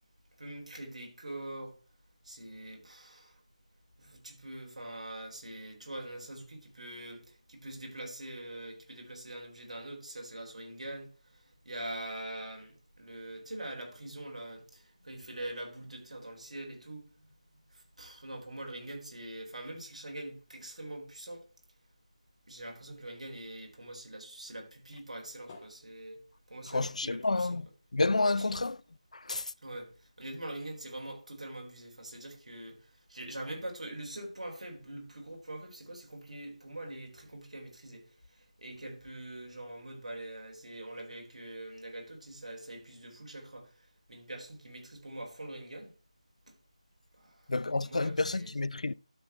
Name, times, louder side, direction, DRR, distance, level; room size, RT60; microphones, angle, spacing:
voice 1, 0.4-1.8 2.2-3.4 4.0-17.1 17.7-21.4 22.5-26.2 26.5-27.6 28.4-28.6 29.6-45.9 46.5-46.6 47.2-47.5 47.8-48.5, right 1 dB, 85° right, 4.1 m, -44 dB
sound 1, 22.6-24.4 24.8-27.0 27.3-27.4 27.7-27.9 28.3-29.8 30.5-30.6, left 3 dB, 15° left, 0.9 m, -60 dB
voice 2, 26.7-27.7 27.9-28.8 29.1-29.5 47.5-48.9, left 3 dB, 75° left, 0.4 m, -30 dB
12.0 x 4.4 x 4.4 m
figure-of-eight pair, 175°, 4 cm